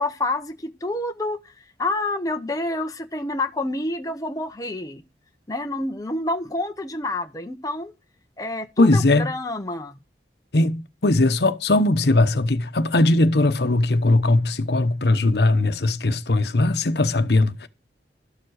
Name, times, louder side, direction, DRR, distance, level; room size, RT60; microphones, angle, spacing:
voice 1, 0.0-1.5 1.8-5.0 5.5-7.9 8.4-10.0, left 2 dB, 20° left, 0.9 m, -28 dB
voice 2, 8.8-9.3 10.5-17.7, left 2 dB, 65° left, 1.0 m, -19 dB
13.0 x 7.4 x 6.4 m
head